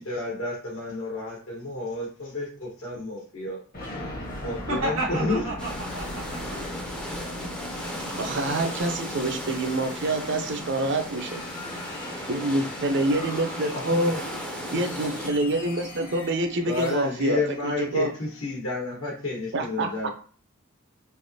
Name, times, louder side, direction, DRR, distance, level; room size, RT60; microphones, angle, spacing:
voice 1, 0.0-3.6 4.4-5.4 13.7-14.2 16.7-20.1, left 2 dB, 75° left, -4 dB, 1.2 m, -31 dB
sound 1, 3.7-18.4, left 1 dB, 45° left, 0.9 m, -39 dB
voice 2, 4.7-6.6 11.6-11.8, right 2 dB, 85° right, -7 dB, 1.0 m, -32 dB
sound 2, 5.6-15.3, left 1 dB, 5° left, 0.5 m, -36 dB
voice 3, 8.2-11.4 12.3-14.1 14.7-18.1 19.5-20.1, right 2 dB, 55° right, 5 dB, 0.6 m, -26 dB
3.4 x 2.9 x 2.7 m, 0.41 s
head